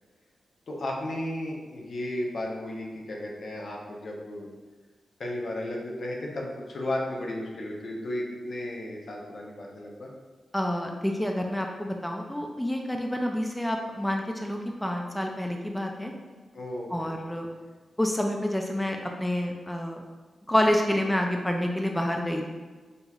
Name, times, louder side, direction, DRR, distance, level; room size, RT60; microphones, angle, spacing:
voice 1, 0.7-4.5 5.2-10.1 16.5-17.2, left 1 dB, 65° left, -2 dB, 0.7 m, -34 dB
voice 2, 10.5-16.1 16.9-17.5 18.0-20.0 20.5-22.5, left 1 dB, 10° left, 2 dB, 0.4 m, -28 dB
5.4 x 2.9 x 2.3 m, 1.3 s
cardioid pair, 60°, 0 cm